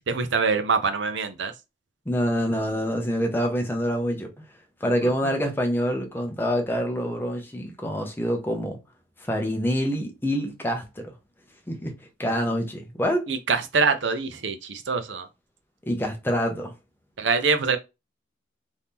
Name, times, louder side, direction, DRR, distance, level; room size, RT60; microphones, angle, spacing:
voice 1, 0.1-1.5 5.0-5.1 13.3-15.3 17.2-17.8, right 5 dB, 65° right, 0.6 m, -24 dB
voice 2, 2.1-4.3 4.8-8.8 9.2-11.1 11.7-13.3 15.8-16.7, equal, 10° left, 0.6 m, -26 dB
2.9 x 2.7 x 3.5 m
head